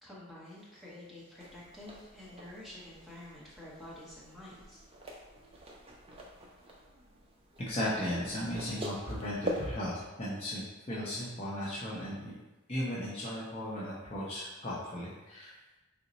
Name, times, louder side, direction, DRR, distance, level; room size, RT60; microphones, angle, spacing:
voice 1, 0.0-4.8, left 1 dB, ahead, -8 dB, 0.9 m, -49 dB
sound 1, 1.4-9.8, equal, 25° right, 0.4 m, -44 dB
voice 2, 7.6-12.3 12.7-15.5, equal, 30° left, -7 dB, 0.6 m, -36 dB
3.7 x 2.1 x 4.0 m, 1.1 s
head